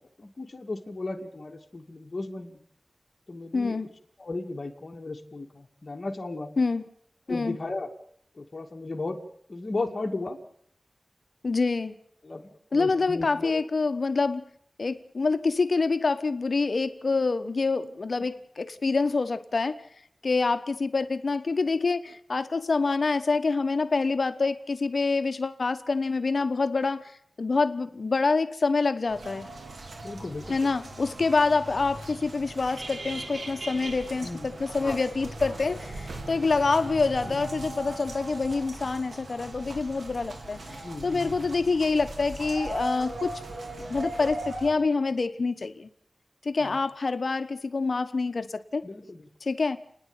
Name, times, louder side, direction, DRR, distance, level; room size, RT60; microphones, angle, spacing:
voice 1, 0.2-2.6 3.3-3.8 4.2-6.5 7.3-7.9 8.4-9.2 9.5-10.4 12.2-13.6 30.0-30.8 34.2-34.5 34.8-35.0 37.2-37.4 40.7-41.4 46.6-46.8 48.8-49.3, left 2 dB, 45° left, 0 dB, 2.4 m, -35 dB
voice 2, 3.5-3.9 6.6-6.8 7.3-7.6 11.4-11.9 12.7-14.4 14.8-19.8 20.2-27.1 27.4-29.5 30.5-40.6 41.0-43.4 43.9-45.9 46.4-48.9 49.4-49.8, left 4 dB, 65° left, 10 dB, 1.2 m, -26 dB
sound 1, 29.1-44.7, right 2 dB, 80° right, 3.5 m, -39 dB
30.0 x 10.5 x 9.0 m, 0.67 s
wide cardioid pair, 75°, 0 cm